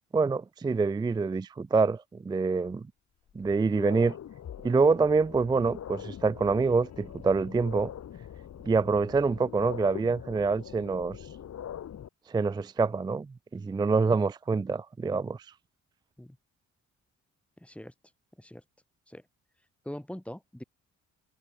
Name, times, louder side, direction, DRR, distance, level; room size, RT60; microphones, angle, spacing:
voice 1, 0.1-2.9 3.4-4.1 4.6-7.9 8.6-11.2 12.3-15.4, right 4 dB, 15° right, 0.4 m, -26 dB
sound 1, 2.7-2.8 3.3-12.1, left 9 dB, 60° left, 3.0 m, -43 dB
voice 2, 17.6-17.9 18.4-18.6 19.1-19.2 19.8-20.6, left 1 dB, 5° left, 4.5 m, -42 dB
cardioid pair, 90°, 30 cm